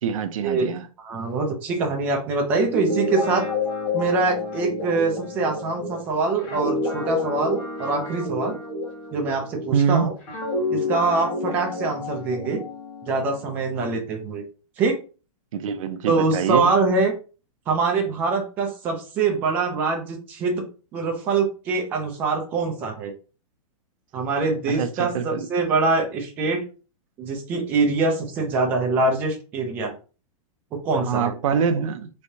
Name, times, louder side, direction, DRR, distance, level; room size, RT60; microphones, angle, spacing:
voice 1, 0.0-0.9 9.7-10.1 15.5-16.7 24.7-25.5 30.9-32.1, right 6 dB, 65° right, 0.5 m, -24 dB
voice 2, 1.0-3.5 3.9-8.6 9.1-10.1 10.7-12.6 13.0-14.4 14.8-15.0 16.1-17.1 17.7-20.7 20.9-23.1 24.1-26.6 27.2-29.9 30.8-31.3, right 3 dB, 10° right, 0.3 m, -24 dB
Guitar, 2.6-9.8 10.3-14.0, left 2 dB, 35° left, 1.9 m, -29 dB
3.3 x 3.2 x 2.6 m
supercardioid pair, 175°, 19 cm